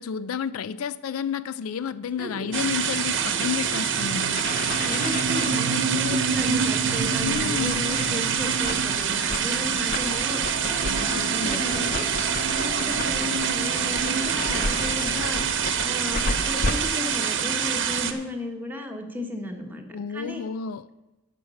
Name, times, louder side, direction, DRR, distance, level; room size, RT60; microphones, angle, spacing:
voice 1, 0.0-4.4 7.2-7.9 11.1-11.6 19.9-20.9, left 7 dB, 75° left, 0.4 m, -31 dB
voice 2, 2.2-2.5 4.7-12.0 12.4-15.4 15.8-20.4, left 2 dB, 10° right, 1.2 m, -35 dB
sound 1, 2.2-17.8, right 3 dB, 80° right, 0.7 m, -32 dB
sound 2, 2.5-18.1, right 8 dB, 60° right, 1.0 m, -26 dB
sound 3, 4.3-16.7, left 3 dB, 40° left, 0.7 m, -34 dB
11.0 x 5.9 x 7.0 m
head